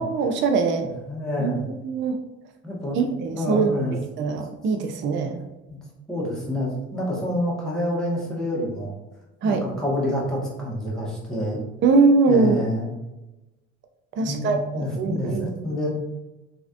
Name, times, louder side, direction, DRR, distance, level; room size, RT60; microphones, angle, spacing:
voice 1, 0.0-0.9 1.4-2.2 2.9-5.4 9.4-9.7 11.8-12.6 14.2-15.5, right 4 dB, 35° right, 5 dB, 0.4 m, -22 dB
voice 2, 0.8-1.6 2.6-3.0 3.4-3.9 5.7-5.8 6.1-8.9 9.4-11.6 12.3-12.9 14.2-15.9, left 1 dB, ahead, -6 dB, 1.4 m, -27 dB
3.0 x 2.8 x 2.5 m, 1.0 s
hypercardioid pair, 65°, 35 cm